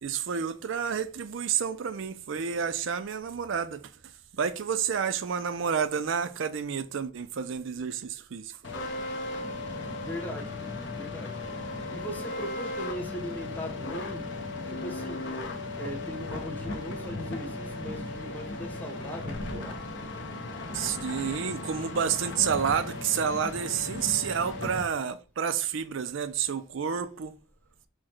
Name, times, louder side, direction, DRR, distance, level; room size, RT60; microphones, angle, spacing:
voice 1, 0.0-3.8 4.3-8.6 20.7-27.3, right 7 dB, 70° right, 0.4 m, -30 dB
sound 1, 8.6-24.8, left 2 dB, 65° left, 0.9 m, -36 dB
voice 2, 10.0-11.4 11.9-15.3 15.8-19.9, equal, 10° left, 0.8 m, -39 dB
4.7 x 2.2 x 4.4 m
head